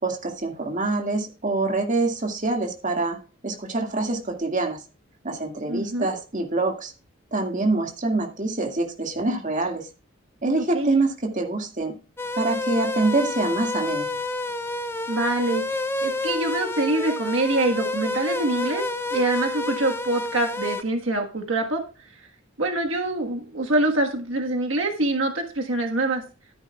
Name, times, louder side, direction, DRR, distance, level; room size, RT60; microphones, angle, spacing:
voice 1, 0.0-3.2 3.4-4.8 5.2-6.9 7.3-9.9 10.4-11.9 12.4-14.1, right 2 dB, 40° right, 2 dB, 2.0 m, -25 dB
voice 2, 5.7-6.1 10.6-11.0 15.1-18.8 19.1-21.8 22.2-22.3 22.6-26.2, right 2 dB, 75° right, 2 dB, 1.4 m, -25 dB
sound 1, 12.2-20.8, left 2 dB, 10° left, 0.6 m, -29 dB
13.5 x 10.0 x 2.3 m, 0.34 s
head